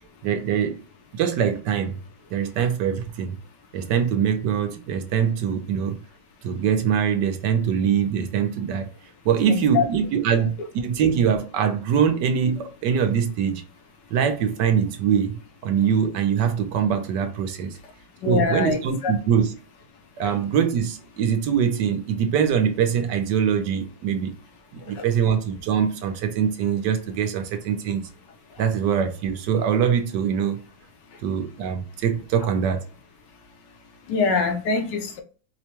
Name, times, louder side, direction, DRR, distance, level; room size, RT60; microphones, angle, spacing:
voice 1, 0.2-0.8 1.1-2.0 2.3-3.4 3.7-6.0 6.4-8.9 9.2-13.6 14.1-17.8 18.2-19.5 20.2-24.4 24.7-28.1 28.6-30.6 31.2-32.8, right 7 dB, 75° right, 1.2 m, -23 dB
voice 2, 9.5-9.8 18.2-19.1 34.1-35.2, left 5 dB, 75° left, 1.4 m, -23 dB
4.8 x 2.1 x 2.9 m
omnidirectional pair, 2.0 m